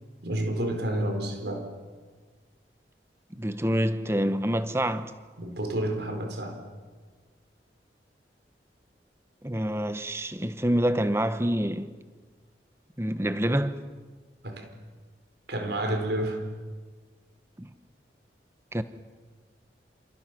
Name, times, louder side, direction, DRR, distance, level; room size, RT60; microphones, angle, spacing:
voice 1, 0.2-1.7 5.4-6.6 14.4-14.7 15.5-16.4, right 1 dB, 70° right, 4.4 m, -30 dB
voice 2, 3.3-5.1 9.4-12.0 13.0-13.8 17.6-17.7 18.7-18.8, equal, 15° right, 1.0 m, -27 dB
28.0 x 28.0 x 6.2 m
head